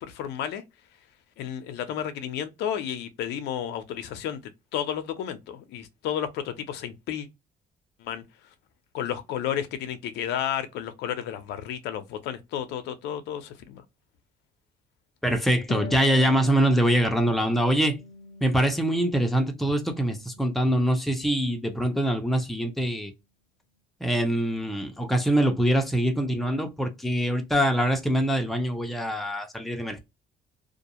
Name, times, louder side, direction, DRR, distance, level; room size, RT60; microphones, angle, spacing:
voice 1, 0.0-0.6 1.4-4.4 4.7-7.3 8.0-8.2 8.9-13.8, left 9 dB, 85° left, 0.6 m, -32 dB
voice 2, 15.2-18.0 18.4-23.1 24.0-30.0, right 1 dB, ahead, 0.7 m, -24 dB
Harp, 15.7-19.1 19.4-20.5, left 3 dB, 45° left, 0.6 m, -41 dB
2.5 x 2.2 x 2.8 m
cardioid pair, 110°, 17 cm